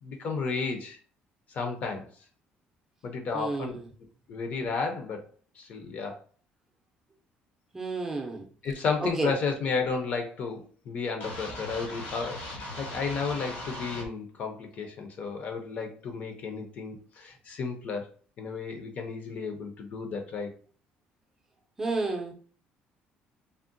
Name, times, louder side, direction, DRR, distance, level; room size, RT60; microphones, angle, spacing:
voice 1, 0.0-1.0 1.5-2.1 3.0-3.8 4.3-5.2 5.6-6.2 8.6-18.1 18.4-20.5, left 5 dB, 45° left, 4 dB, 0.6 m, -33 dB
voice 2, 3.3-3.9 7.7-8.5 9.0-9.3 21.8-22.3, right 3 dB, 15° right, 0 dB, 0.5 m, -31 dB
sound 1, 11.2-14.1, left 1 dB, 85° left, 1.2 m, -39 dB
3.5 x 2.1 x 2.5 m, 0.42 s
cardioid pair, 155°, 3 cm